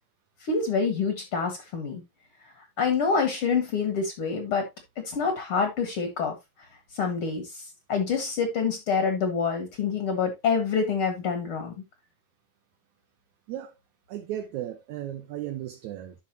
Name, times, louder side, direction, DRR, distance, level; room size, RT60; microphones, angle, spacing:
voice 1, 0.4-2.0 2.8-4.7 5.0-6.4 6.9-11.7, left 5 dB, 50° left, 2.0 m, -26 dB
voice 2, 14.1-16.2, right 12 dB, 70° right, 2.0 m, -35 dB
11.5 x 5.6 x 2.8 m
omnidirectional pair, 4.0 m